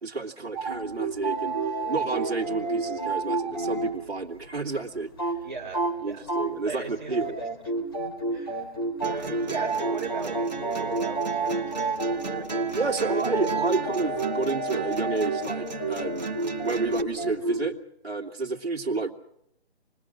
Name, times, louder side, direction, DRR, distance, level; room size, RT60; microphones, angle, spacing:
voice 1, 0.0-1.6 1.9-5.3 6.0-7.4 12.7-16.3 16.6-17.7 18.0-19.1, right 3 dB, 65° right, 0 dB, 2.6 m, -30 dB
sound 1, 0.5-3.9 4.2-4.3 4.5-4.6 4.9-5.4 5.7-6.0 6.3-6.7 7.1-17.6, right 3 dB, 20° left, 3.2 m, -29 dB
voice 2, 5.4-6.3 6.6-7.5 8.3-8.8 9.0-13.1, right 4 dB, 5° left, -12 dB, 1.1 m, -39 dB
sound 2, 9.0-17.0, right 4 dB, 40° right, 1.6 m, -35 dB
28.0 x 21.0 x 6.5 m, 0.75 s
hypercardioid pair, 180°, 33 cm